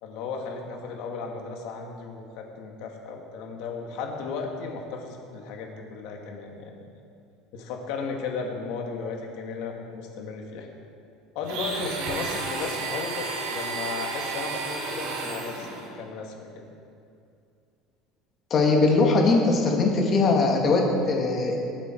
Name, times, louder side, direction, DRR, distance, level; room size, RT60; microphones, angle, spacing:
voice 1, 0.0-6.7 7.5-10.7 11.3-16.6, left 4 dB, 60° left, 1 dB, 2.3 m, -35 dB
Domestic sounds home sounds, 11.4-15.9, right 4 dB, 65° right, 3.3 m, -32 dB
voice 2, 18.5-21.6, left 3 dB, 30° left, 0 dB, 2.2 m, -21 dB
23.0 x 8.9 x 4.7 m, 2.5 s
cardioid pair, 165°, 0 cm